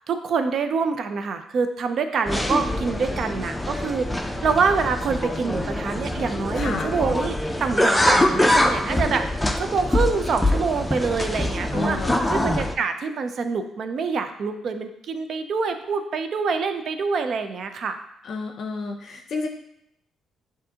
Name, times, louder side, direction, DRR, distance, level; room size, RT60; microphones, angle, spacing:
voice 1, 0.1-4.1 4.4-9.2 9.6-12.0 12.3-18.0, right 5 dB, 60° right, 8 dB, 0.5 m, -26 dB
sound 1, 2.3-12.7, left 1 dB, 10° left, 0.5 m, -24 dB
voice 2, 6.6-6.9 11.7-12.4 18.2-19.5, left 3 dB, 60° left, 3 dB, 0.5 m, -30 dB
7.3 x 2.6 x 2.8 m, 0.79 s
cardioid pair, 90°, 0 cm